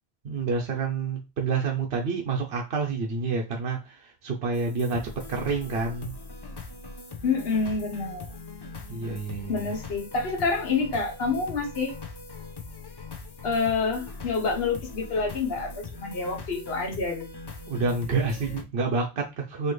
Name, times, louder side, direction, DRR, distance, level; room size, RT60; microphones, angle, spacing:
voice 1, 0.2-6.1 8.9-9.7 17.7-19.7, right 4 dB, 70° right, 0 dB, 0.9 m, -28 dB
sound 1, 4.5-18.6, left 3 dB, 35° left, 0.4 m, -41 dB
voice 2, 7.2-8.3 9.5-11.9 13.4-17.2, left 4 dB, 65° left, 1 dB, 1.2 m, -27 dB
4.3 x 2.8 x 3.1 m, 0.26 s
omnidirectional pair, 1.1 m